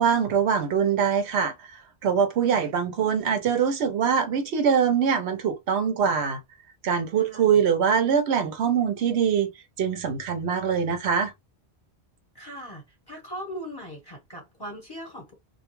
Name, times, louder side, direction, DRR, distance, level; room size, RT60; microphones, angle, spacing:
voice 1, 0.0-1.5 2.0-6.4 6.8-9.5 9.8-11.3, right 7 dB, 80° right, 0.9 m, -23 dB
voice 2, 7.2-7.6 12.3-15.3, equal, 20° left, 1.1 m, -39 dB
2.3 x 2.1 x 2.9 m
omnidirectional pair, 1.1 m